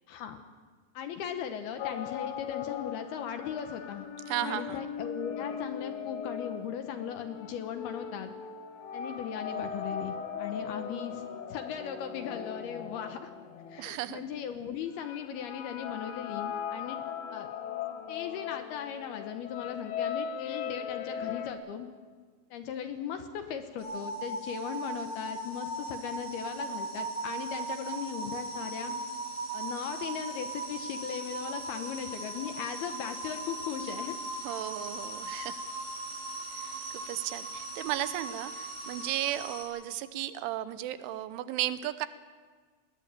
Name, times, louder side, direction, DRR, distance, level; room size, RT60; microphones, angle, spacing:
voice 1, 0.1-0.4 0.9-4.1 4.4-8.3 8.9-11.2 11.5-13.3 13.7-17.0 17.3-17.5 18.1-21.9 22.5-29.0 29.5-34.2, left 8 dB, 70° left, 7 dB, 2.6 m, -38 dB
sound 1, 1.8-14.3 15.0-21.5, left 7 dB, 90° left, 4.0 m, -39 dB
voice 2, 4.3-4.8 13.8-14.2 34.4-35.6 36.6-36.7 36.9-42.1, right 13 dB, 85° right, 13 dB, 3.3 m, -34 dB
sound 2, 23.8-39.6, right 2 dB, 25° right, 6.4 m, -38 dB
20.5 x 19.0 x 8.9 m, 1.5 s
omnidirectional pair, 5.4 m